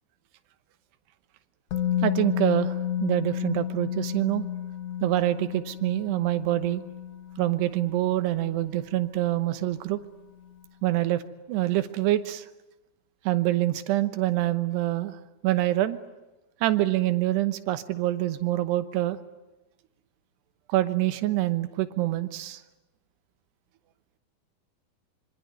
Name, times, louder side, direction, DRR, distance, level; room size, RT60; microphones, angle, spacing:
Musical instrument, 1.7-9.6 9.9-10.1, left 10 dB, 70° left, 1.5 m, -32 dB
voice 1, 2.0-2.7 3.0-4.4 5.0-6.8 7.4-10.0 10.8-11.2 11.5-12.5 13.3-15.2 15.4-16.0 16.6-19.2 20.7-22.6, right 15 dB, 85° right, 11 dB, 3.2 m, -25 dB
25.5 x 24.5 x 9.4 m, 1.0 s
omnidirectional pair, 4.7 m